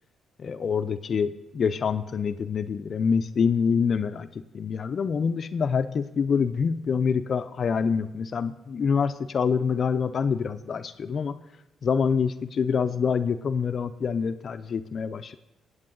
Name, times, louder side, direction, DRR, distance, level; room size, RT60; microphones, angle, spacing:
voice 1, 0.4-4.3 4.5-11.4 11.8-15.4, left 6 dB, 55° left, 11 dB, 0.5 m, -26 dB
17.5 x 7.9 x 3.8 m, 0.93 s
cardioid pair, 70°, 0 cm